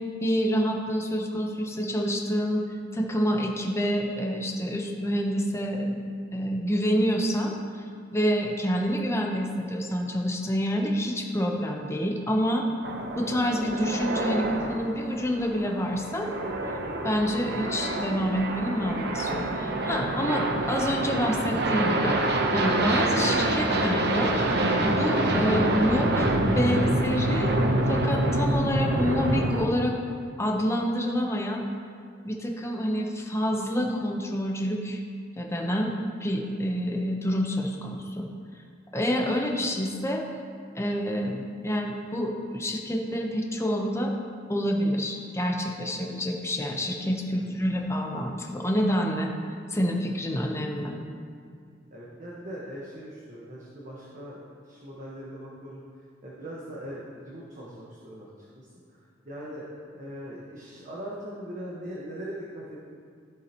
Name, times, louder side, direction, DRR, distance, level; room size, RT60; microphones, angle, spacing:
voice 1, 0.2-2.6 2.9-7.6 8.1-16.3 17.0-22.2 22.5-24.4 24.8-27.6 27.9-30.0 30.4-31.6 32.2-35.0 35.4-35.9 36.2-38.3 38.9-40.2 40.7-44.1 44.5-49.3 49.7-51.0, equal, 15° left, 1 dB, 0.9 m, -27 dB
sound 1, 12.8-29.6, right 1 dB, 60° right, 0.8 m, -26 dB
voice 2, 50.6-50.9 51.9-55.8 56.2-58.3 58.6-62.8, equal, 45° right, -5 dB, 1.3 m, -41 dB
14.0 x 7.5 x 3.0 m, 2.2 s
head